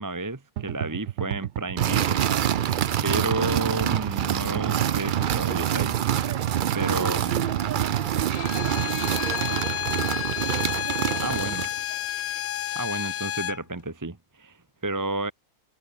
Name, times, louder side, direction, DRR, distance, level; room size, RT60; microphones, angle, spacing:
voice 1, 0.0-2.2 3.0-6.0 6.7-7.4 11.2-11.7 12.7-15.3, right 2 dB, 15° right, 0.9 m, -31 dB
sound 1, 0.6-8.5, right 13 dB, 65° right, 0.9 m, -31 dB
sound 2, 1.8-11.8, right 10 dB, 90° right, 0.4 m, -26 dB
voice 2, 6.5-11.4 11.9-12.2, right 2 dB, 40° right, 4.6 m, -48 dB
Bowed string instrument, 8.3-13.6, left 12 dB, 70° left, 1.2 m, -30 dB
omnidirectional pair, 1.6 m